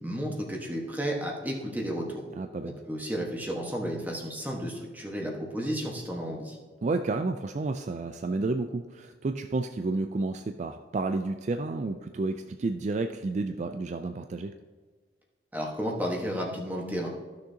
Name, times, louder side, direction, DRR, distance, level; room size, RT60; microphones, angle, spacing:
voice 1, 0.0-2.2 2.9-6.6 15.5-17.1, equal, 10° right, -1 dB, 1.3 m, -32 dB
voice 2, 2.4-2.7 6.8-14.5, right 3 dB, 40° right, 7 dB, 0.3 m, -31 dB
14.0 x 6.5 x 2.8 m, 1.5 s
head